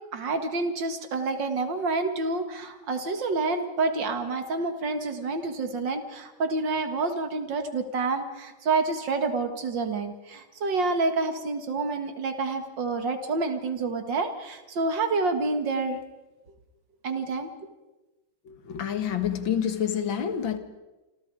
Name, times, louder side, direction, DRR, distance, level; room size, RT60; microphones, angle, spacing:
voice 1, 0.1-16.0 17.0-17.5, right 3 dB, 60° right, 8 dB, 2.6 m, -28 dB
voice 2, 18.5-20.6, left 8 dB, 70° left, 9 dB, 2.3 m, -28 dB
28.0 x 26.0 x 4.9 m, 1.1 s
omnidirectional pair, 2.2 m